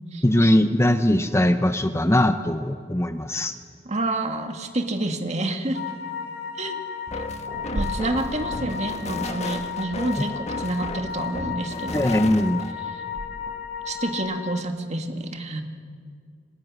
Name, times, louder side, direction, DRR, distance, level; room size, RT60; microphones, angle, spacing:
voice 1, 0.2-3.6 11.9-12.6, left 1 dB, 15° left, 9 dB, 0.7 m, -20 dB
voice 2, 3.9-5.8 6.6-6.8 7.7-12.1 12.9-13.0 13.8-15.6, right 2 dB, 40° right, 5 dB, 1.9 m, -28 dB
sound 1, 5.7-14.6, left 7 dB, 65° left, 2.0 m, -34 dB
sound 2, 7.1-12.7, left 2 dB, 35° left, 1.5 m, -34 dB
sound 3, 7.5-14.4, right 1 dB, 75° right, 1.3 m, -39 dB
30.0 x 26.5 x 6.2 m, 2.1 s
head